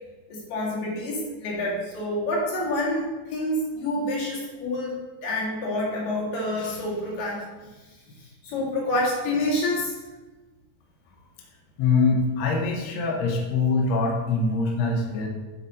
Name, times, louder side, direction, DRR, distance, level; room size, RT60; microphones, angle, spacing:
voice 1, 0.3-7.5 8.2-9.9, left 1 dB, 80° left, -4 dB, 3.4 m, -28 dB
voice 2, 11.8-15.3, left 3 dB, 65° left, 0 dB, 1.9 m, -23 dB
9.1 x 4.3 x 4.1 m, 1.2 s
omnidirectional pair, 3.7 m